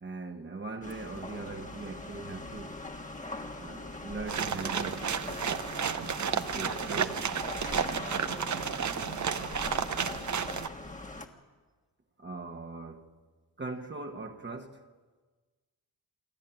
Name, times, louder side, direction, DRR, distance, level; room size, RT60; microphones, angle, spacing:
voice 1, 0.0-2.8 3.6-5.1 6.2-7.2 12.2-13.1 13.6-14.9, right 3 dB, 30° right, 1.3 m, -40 dB
sound 1, 0.8-11.3, left 2 dB, 20° left, 1.5 m, -41 dB
sound 2, 4.3-10.7, right 7 dB, 50° right, 0.8 m, -32 dB
voice 2, 6.5-6.9 7.8-8.5 8.8-9.7, equal, ahead, 1.3 m, -50 dB
28.0 x 10.5 x 9.0 m
wide cardioid pair, 115°, 37 cm